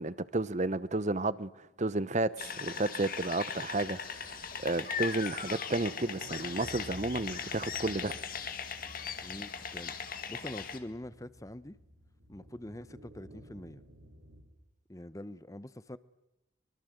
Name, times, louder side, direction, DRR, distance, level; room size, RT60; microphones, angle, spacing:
voice 1, 0.0-8.2, right 2 dB, 35° right, 0.8 m, -32 dB
sound 1, 2.4-10.8, left 7 dB, 45° left, 2.1 m, -39 dB
sound 2, 3.7-14.4, equal, 70° right, 5.8 m, -54 dB
voice 2, 9.2-9.9 10.3-11.8 12.3-13.8 14.9-16.0, left 1 dB, 15° left, 0.9 m, -44 dB
24.0 x 23.5 x 8.0 m
head